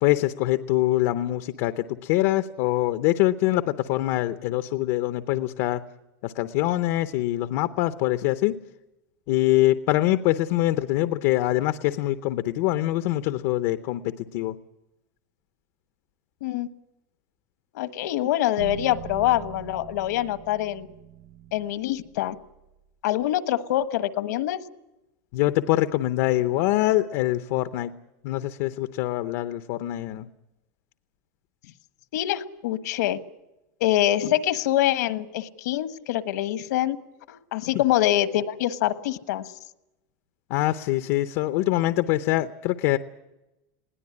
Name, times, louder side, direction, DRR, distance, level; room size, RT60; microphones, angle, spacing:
voice 1, 0.0-5.8 6.2-8.6 9.3-14.6 25.3-27.9 28.2-30.3 40.5-43.0, left 16 dB, 45° left, 12 dB, 0.7 m, -24 dB
voice 2, 17.7-20.9 21.5-22.3 23.0-24.6 32.1-33.2 33.8-37.0 37.3-39.5, left 13 dB, 70° left, 12 dB, 1.3 m, -25 dB
sound 1, 18.6-22.8, right 10 dB, 75° right, 6.8 m, -42 dB
21.0 x 17.5 x 9.7 m, 0.96 s
supercardioid pair, 180°, 10 cm